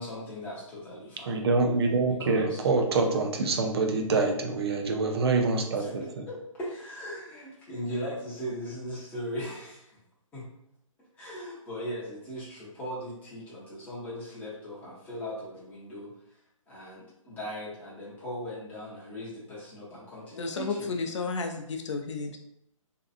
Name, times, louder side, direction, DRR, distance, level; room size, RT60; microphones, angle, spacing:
voice 1, 0.0-1.5 2.1-2.7 5.7-10.0 10.3-10.5 11.2-16.1 16.7-20.9, equal, 10° left, -8 dB, 0.7 m, -39 dB
voice 2, 1.3-6.2, right 3 dB, 50° right, 3 dB, 0.5 m, -26 dB
voice 3, 20.4-22.4, left 4 dB, 60° left, 5 dB, 0.4 m, -32 dB
2.7 x 2.3 x 2.4 m, 0.76 s
figure-of-eight pair, 145°, 18 cm